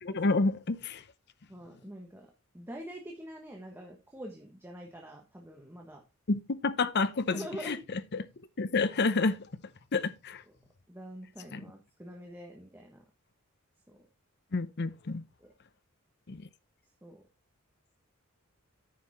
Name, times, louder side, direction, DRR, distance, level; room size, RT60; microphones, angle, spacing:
voice 1, 0.0-1.0 6.3-8.3 8.6-9.5 9.9-10.4 11.5-11.6 14.5-15.2 16.3-16.5, left 3 dB, 50° left, 0.7 m, -29 dB
voice 2, 1.5-6.0 7.3-7.8 10.9-13.0 13.9-14.0 15.4-15.5 17.0-17.2, equal, 10° right, 1.3 m, -45 dB
9.6 x 5.8 x 4.3 m
head